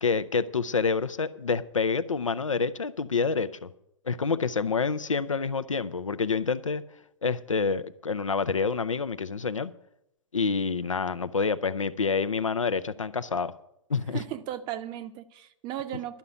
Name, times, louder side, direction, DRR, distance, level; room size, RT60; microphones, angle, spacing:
voice 1, 0.0-3.7 4.0-6.8 7.2-9.7 10.3-13.5 13.9-14.2, left 5 dB, 85° left, 0.6 m, -27 dB
voice 2, 14.1-16.2, right 12 dB, 30° right, 0.7 m, -36 dB
11.5 x 5.7 x 9.1 m
figure-of-eight pair, 110°, 16 cm